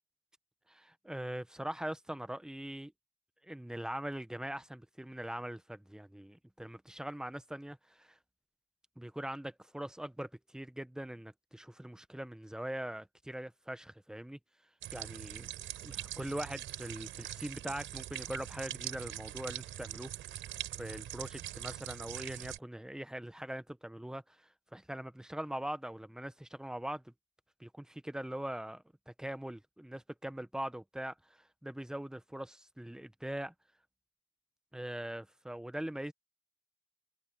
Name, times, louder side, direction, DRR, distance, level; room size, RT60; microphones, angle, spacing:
voice 1, 0.7-2.9 3.4-8.2 9.0-14.4 14.9-15.5 15.8-20.4 20.8-27.1 27.6-33.5 34.7-36.1, right 1 dB, 5° right, 1.2 m, -42 dB
sound 1, 14.8-22.6, right 12 dB, 80° right, 4.6 m, -43 dB
open air
cardioid pair, 90°, 20 cm